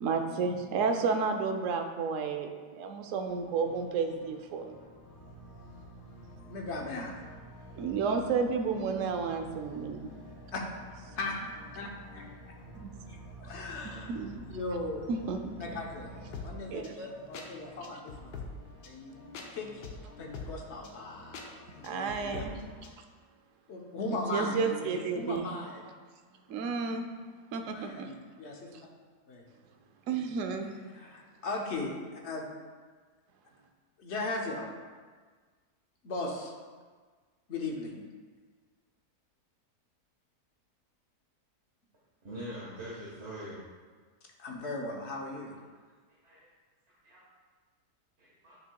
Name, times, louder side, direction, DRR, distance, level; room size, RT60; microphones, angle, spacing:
voice 1, 0.0-4.8 7.8-10.1 12.8-12.9 14.1-14.4 15.1-15.5 16.7-17.0 21.8-22.6 24.3-25.5 26.5-27.1 27.5-28.1 30.1-30.8, right 5 dB, 65° right, 5 dB, 0.9 m, -31 dB
sound 1, 3.3-23.0, left 3 dB, 85° left, 1.4 m, -49 dB
Car / Idling, 4.4-17.0, right 2 dB, 20° right, 2.0 m, -51 dB
voice 2, 6.4-7.1 10.5-10.6 11.2-11.4 11.7-12.5 13.1-14.2 14.5-15.1 15.6-18.3 18.8-19.1 19.5-19.8 20.2-22.5 23.7-25.9 26.5-26.6 27.7-28.9 29.3-29.4 30.1-30.7 30.9-32.5 34.0-34.7 36.0-36.5 37.5-38.0 44.4-45.6, left 2 dB, 50° left, 0 dB, 1.1 m, -38 dB
voice 3, 42.2-43.6 45.5-45.6 46.2-46.4 47.0-47.2 48.2-48.6, equal, 45° right, -8 dB, 1.6 m, -43 dB
9.2 x 6.4 x 2.3 m, 1.5 s
omnidirectional pair, 1.7 m